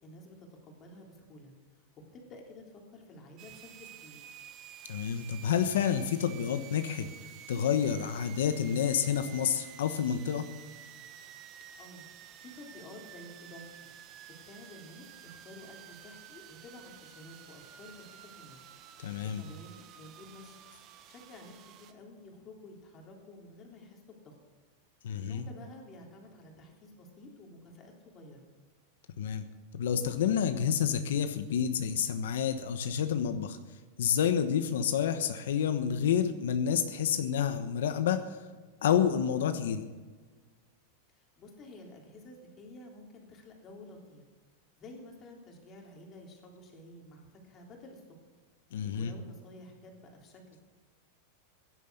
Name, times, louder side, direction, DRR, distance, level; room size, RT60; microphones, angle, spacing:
voice 1, 0.0-1.5 2.1-4.2 11.8-12.0 12.4-13.7 14.4-18.6 19.2-20.6 21.1-24.4 25.2-28.4 41.1-44.2 44.8-48.0 48.7-50.6, left 1 dB, 25° left, 1 dB, 3.3 m, -51 dB
sound 1, 3.4-21.9, right 10 dB, 30° right, 1.2 m, -51 dB
voice 2, 4.9-7.1 7.5-10.4 19.0-19.4 25.0-25.5 29.2-29.4 29.7-33.6 34.0-38.4 38.8-39.8 48.7-49.1, left 8 dB, 85° left, 9 dB, 1.2 m, -29 dB
16.5 x 11.0 x 6.8 m, 1.4 s
supercardioid pair, 165°, 0 cm